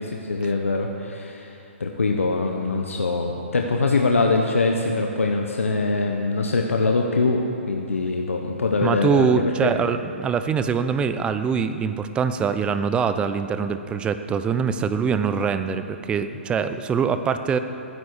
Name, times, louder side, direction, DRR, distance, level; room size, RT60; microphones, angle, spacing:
voice 1, 0.3-1.5 1.8-9.7, left 3 dB, 90° left, 2 dB, 1.2 m, -23 dB
voice 2, 8.8-17.6, right 6 dB, 15° right, 10 dB, 0.6 m, -23 dB
20.0 x 10.0 x 4.9 m, 2.8 s
hypercardioid pair, 135°, 7 cm